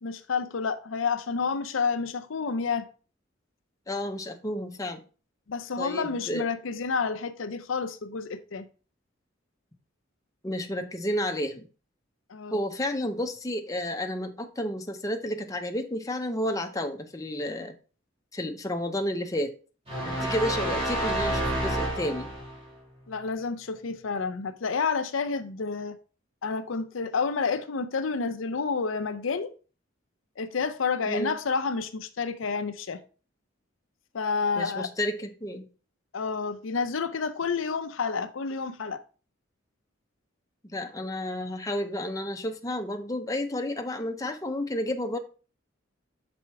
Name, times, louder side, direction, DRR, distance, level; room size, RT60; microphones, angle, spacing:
voice 1, 0.0-2.8 5.5-8.7 12.3-12.6 23.1-26.0 26.4-29.5 30.4-33.0 34.1-34.9 36.1-39.0, left 5 dB, 85° left, 0.6 m, -29 dB
voice 2, 3.9-5.0 5.8-6.5 10.4-11.7 12.5-17.7 18.3-19.5 20.0-22.3 31.1-31.4 34.6-35.7 40.6-45.2, left 1 dB, 15° left, 0.7 m, -31 dB
sound 1, 19.9-22.6, right 1 dB, 30° right, 3.2 m, -29 dB
6.0 x 4.2 x 4.6 m
head